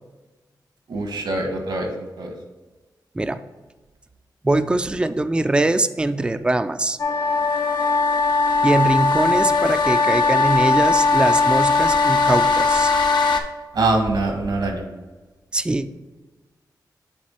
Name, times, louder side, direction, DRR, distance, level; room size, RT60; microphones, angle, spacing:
voice 1, 0.9-1.9 2.2-2.3 13.7-14.8, right 2 dB, 75° right, 3 dB, 1.3 m, -23 dB
voice 2, 4.4-7.0 8.6-12.9 15.5-15.9, right 2 dB, 15° right, 11 dB, 0.3 m, -22 dB
sound 1, 7.0-13.4, left 4 dB, 80° left, 0.7 m, -19 dB
7.8 x 3.3 x 4.3 m, 1.3 s
wide cardioid pair, 85°, 8 cm